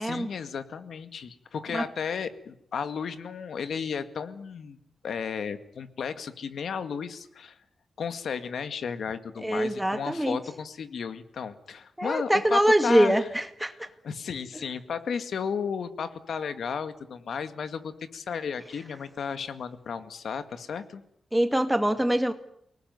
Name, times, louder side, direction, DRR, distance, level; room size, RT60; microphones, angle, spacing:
voice 1, 0.0-4.8 5.0-7.6 8.0-13.3 13.8-21.0, left 6 dB, 75° left, 10 dB, 2.0 m, -34 dB
voice 2, 9.4-10.4 12.0-13.7 21.3-22.3, right 1 dB, 5° right, 8 dB, 2.1 m, -24 dB
29.0 x 19.5 x 9.4 m, 0.74 s
wide cardioid pair, 150°, 0 cm